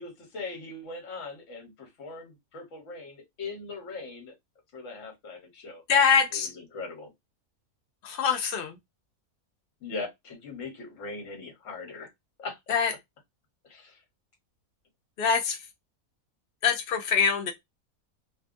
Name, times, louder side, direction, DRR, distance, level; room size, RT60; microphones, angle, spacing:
voice 1, 0.0-4.3 4.7-5.8 6.3-7.1 9.8-12.1 12.4-12.8 13.6-14.0, left 3 dB, 60° left, 1.3 m, -40 dB
voice 2, 5.9-6.5 8.0-8.8 12.7-12.9 15.2-15.6 16.6-17.5, left 6 dB, 80° left, 0.5 m, -24 dB
2.8 x 2.3 x 2.4 m
omnidirectional pair, 1.5 m